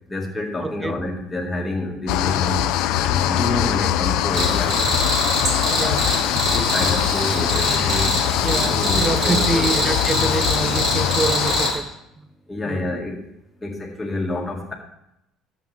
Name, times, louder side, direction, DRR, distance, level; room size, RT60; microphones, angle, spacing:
voice 1, 0.1-2.7 3.0-4.7 5.8-6.0 6.4-8.2 8.5-9.7 12.5-13.2 13.6-14.7, left 2 dB, 15° left, -1 dB, 2.0 m, -28 dB
voice 2, 0.6-1.0 3.8-3.9 5.7-6.1 8.4-11.8 12.7-12.9, right 3 dB, 15° right, 13 dB, 0.5 m, -26 dB
sound 1, 2.1-11.7, left 12 dB, 75° left, 0.5 m, -22 dB
Cricket, 4.3-11.8, right 1 dB, 45° right, 2.3 m, -25 dB
11.5 x 7.6 x 3.4 m, 0.83 s
cardioid pair, 135°, 0 cm